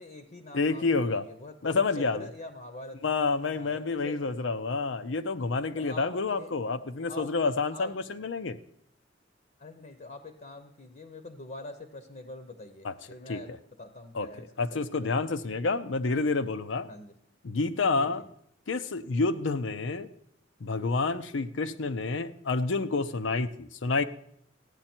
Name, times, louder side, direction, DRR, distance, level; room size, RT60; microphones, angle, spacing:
voice 1, 0.0-3.0 3.5-4.3 5.7-6.5 7.1-7.3 7.7-7.9 9.6-15.1 16.9-17.1 18.0-18.3, left 2 dB, 45° left, 8 dB, 0.9 m, -45 dB
voice 2, 0.5-1.2 1.6-2.3 3.0-8.6 12.8-12.9 13.3-13.6 14.1-16.9 17.4-18.2 18.7-20.1 20.6-24.0, left 3 dB, 75° left, 11 dB, 0.6 m, -29 dB
15.0 x 9.9 x 4.4 m, 0.71 s
head